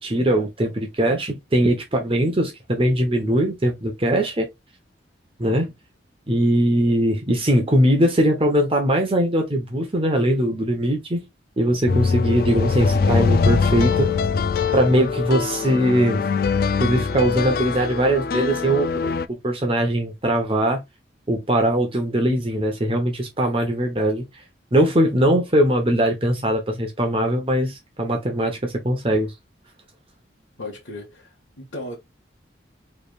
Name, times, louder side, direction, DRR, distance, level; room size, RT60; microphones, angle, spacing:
voice 1, 0.0-4.5 5.4-5.7 6.3-11.3 11.6-14.1 14.7-16.2 16.8-20.8 21.3-24.2 24.7-29.3, right 1 dB, 30° right, 0.9 m, -21 dB
sound 1, 11.9-19.3, left 5 dB, 50° left, 0.3 m, -22 dB
voice 2, 30.6-32.0, left 2 dB, 90° left, 1.2 m, -36 dB
4.8 x 3.3 x 2.4 m
head